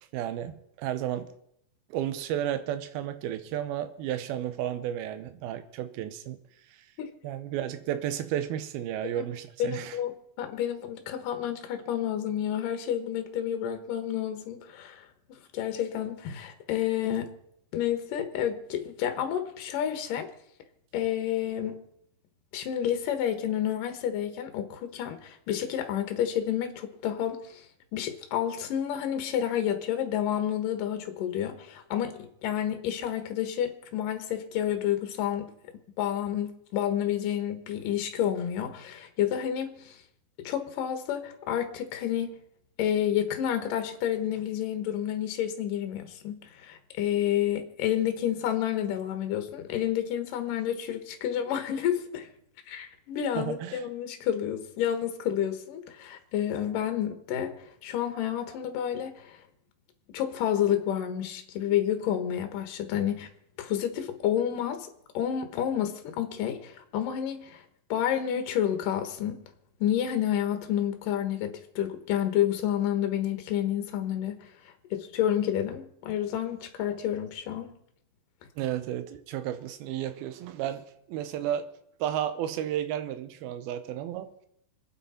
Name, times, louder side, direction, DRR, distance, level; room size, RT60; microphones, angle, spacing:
voice 1, 0.1-1.3 1.9-6.4 6.7-6.8 7.2-10.0 53.3-53.8 78.6-81.7 82.0-84.5, right 11 dB, 90° right, 2.7 m, -33 dB
voice 2, 9.6-17.3 17.7-20.3 20.9-21.8 22.5-27.7 27.9-35.5 36.0-40.0 40.4-42.4 42.8-52.3 52.7-59.4 60.1-63.3 63.6-64.9 65.1-67.6 67.9-69.4 69.8-74.5 74.9-77.7, left 10 dB, 70° left, 2.8 m, -30 dB
26.0 x 9.2 x 4.3 m
omnidirectional pair, 4.2 m